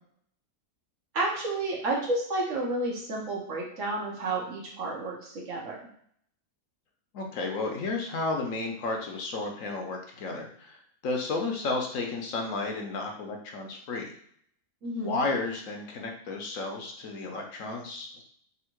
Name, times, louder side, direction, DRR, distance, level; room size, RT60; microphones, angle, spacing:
voice 1, 1.1-5.8 14.8-15.2, right 2 dB, 60° right, -2 dB, 1.4 m, -31 dB
voice 2, 7.1-14.1 15.0-18.2, left 3 dB, 65° left, 2 dB, 1.1 m, -32 dB
3.5 x 2.8 x 4.4 m, 0.64 s
omnidirectional pair, 1.6 m